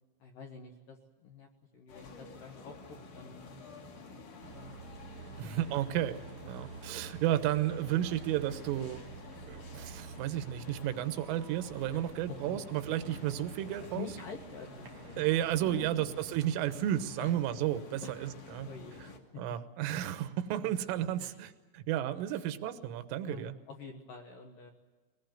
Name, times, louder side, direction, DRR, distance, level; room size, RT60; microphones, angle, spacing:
voice 1, 0.2-2.8 3.1-3.9 4.5-4.9 5.4-5.6 11.9-12.6 13.8-15.3 15.6-16.1 17.2-17.3 18.0-18.2 18.6-19.4 19.9-20.1 20.6-20.8 21.2-21.4 22.3-22.4 23.2-24.7, left 6 dB, 65° left, 3 dB, 2.2 m, -48 dB
sound 1, 1.9-19.2, left 3 dB, 50° left, 3.3 m, -50 dB
sound 2, 4.4-15.9, right 6 dB, 50° right, 2.0 m, -50 dB
voice 2, 5.4-6.2 6.5-9.0 9.5-14.1 15.2-18.7 19.4-23.5, right 12 dB, 85° right, 11 dB, 3.7 m, -32 dB
21.5 x 20.0 x 9.2 m, 1.3 s
omnidirectional pair, 5.7 m